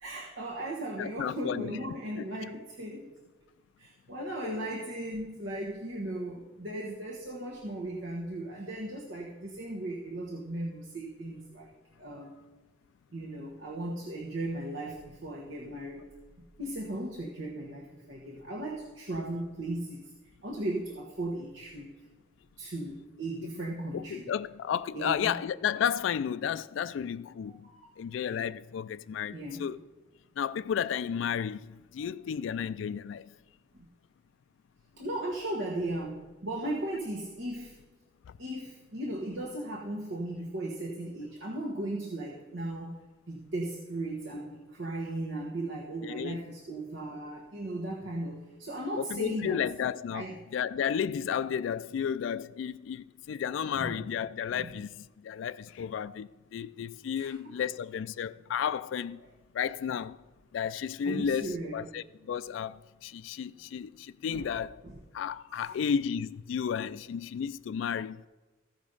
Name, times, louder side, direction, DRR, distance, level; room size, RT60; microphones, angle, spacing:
voice 1, 0.0-3.1 3.8-11.7 12.0-12.4 13.1-16.0 16.6-20.0 20.4-21.9 22.6-24.3 24.9-25.3 27.5-27.9 28.2-28.3 29.3-29.7 33.7-33.9 35.0-37.8 38.4-43.0 43.3-49.6 50.1-50.4 53.8-54.0 54.5-54.7 57.2-57.6 59.2-59.3 61.0-61.9 64.3-64.5 64.8-65.0 65.6-65.7, right 1 dB, 85° right, 1.3 m, -37 dB
voice 2, 1.0-1.8 2.2-2.3 4.2-4.7 23.4-23.5 23.9-27.7 28.0-29.8 30.4-33.3 38.3-38.4 46.0-46.4 49.0-50.3 50.5-59.2 59.5-60.2 60.5-64.8 65.1-68.3, left 8 dB, 85° left, 0.3 m, -33 dB
14.5 x 5.1 x 5.4 m
head